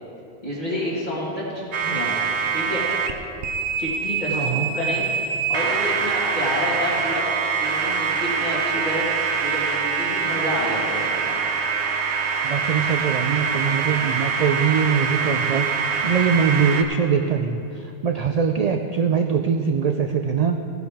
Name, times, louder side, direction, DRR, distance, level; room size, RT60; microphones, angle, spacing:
voice 1, 0.4-2.1 2.5-2.8 3.8-5.0 5.5-7.3 7.6-9.0 9.3-11.4, left 1 dB, 40° left, -9 dB, 1.9 m, -29 dB
sound 1, 1.7-3.1 3.4-16.8, right 5 dB, 85° right, 1.0 m, -24 dB
voice 2, 4.3-4.7 12.4-20.6, right 6 dB, 55° right, 6 dB, 0.4 m, -22 dB
15.5 x 10.5 x 3.5 m, 2.7 s
omnidirectional pair, 1.1 m